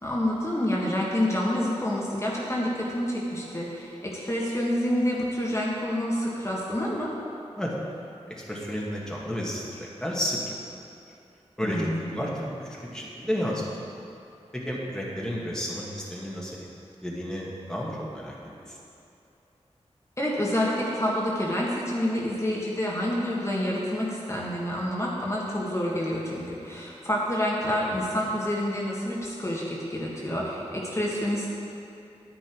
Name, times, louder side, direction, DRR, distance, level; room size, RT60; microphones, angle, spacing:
voice 1, 0.0-7.1 11.6-12.2 20.2-31.5, left 1 dB, 25° left, -5 dB, 1.7 m, -28 dB
voice 2, 8.3-10.5 11.6-13.7 14.5-16.6 17.0-18.4 18.7-18.8, equal, 5° left, -4 dB, 1.9 m, -32 dB
10.0 x 9.9 x 4.6 m, 2.7 s
wide cardioid pair, 75°, 12 cm